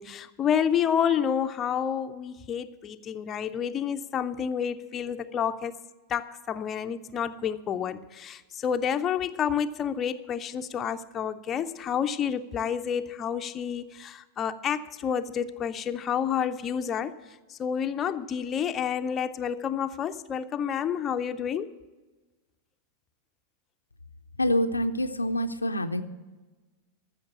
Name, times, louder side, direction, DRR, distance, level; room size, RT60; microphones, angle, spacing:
voice 1, 0.0-5.7 6.1-17.1 17.6-21.7, left 8 dB, 25° left, 0.6 m, -29 dB
voice 2, 24.4-26.0, left 1 dB, 80° left, 0.6 m, -26 dB
14.0 x 6.5 x 8.3 m
figure-of-eight pair, 90°, 0 cm